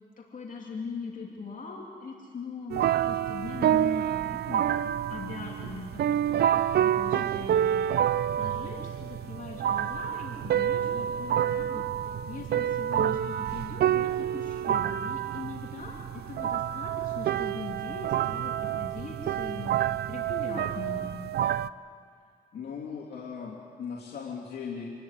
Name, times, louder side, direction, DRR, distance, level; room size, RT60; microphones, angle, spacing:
voice 1, 0.2-4.8 5.1-16.0 16.3-21.1, left 4 dB, 55° left, -2 dB, 3.1 m, -41 dB
sound 1, 2.7-21.7, right 10 dB, 80° right, 0.5 m, -28 dB
voice 2, 7.1-7.5 22.5-24.9, left 6 dB, 85° left, -5 dB, 3.1 m, -38 dB
27.5 x 13.5 x 9.9 m, 2.2 s
cardioid pair, 85°, 16 cm